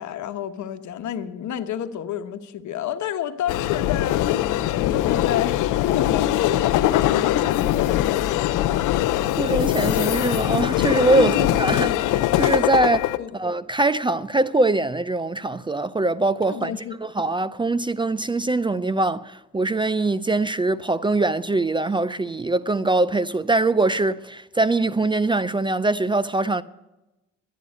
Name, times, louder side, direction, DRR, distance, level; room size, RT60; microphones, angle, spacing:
voice 1, 0.0-8.9 11.2-12.2 13.2-13.4 16.5-16.9, left 9 dB, 70° left, 1.1 m, -30 dB
sound 1, 3.5-13.2, left 13 dB, 90° left, 0.6 m, -22 dB
voice 2, 9.4-12.0 12.4-16.7 17.0-26.6, right 2 dB, 15° right, 0.4 m, -22 dB
12.0 x 9.3 x 9.6 m
cardioid pair, 90°, 30 cm